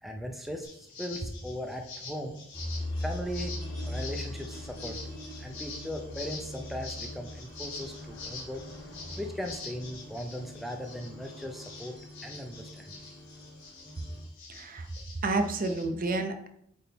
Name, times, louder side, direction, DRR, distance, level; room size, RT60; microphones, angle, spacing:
voice 1, 0.0-2.4 3.0-8.6 9.2-12.0 12.2-13.0, equal, ahead, 3 dB, 0.5 m, -38 dB
sound 1, 0.6-15.8, left 3 dB, 65° left, 2.6 m, -46 dB
sound 2, 2.5-14.2, left 1 dB, 20° left, 2.9 m, -41 dB
voice 2, 14.5-14.9 15.2-16.5, right 2 dB, 45° right, 7 dB, 0.7 m, -30 dB
8.6 x 3.6 x 4.0 m, 0.73 s
head